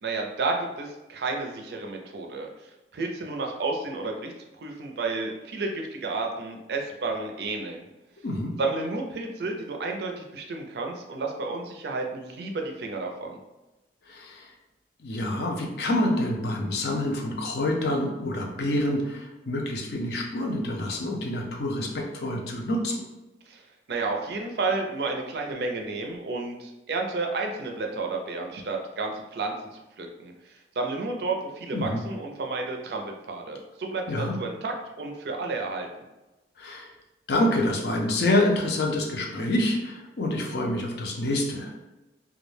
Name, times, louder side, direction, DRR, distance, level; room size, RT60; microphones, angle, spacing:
voice 1, 0.0-2.5 2.9-7.9 8.6-13.4 23.5-23.6 23.9-29.5 30.0-35.9, right 3 dB, 65° right, 2 dB, 0.4 m, -31 dB
voice 2, 8.2-8.6 14.1-14.5 15.0-23.0 31.7-32.0 34.1-34.4 36.6-36.9 37.3-41.9, left 1 dB, 65° left, 1 dB, 0.5 m, -27 dB
2.2 x 2.1 x 3.1 m, 1.0 s
head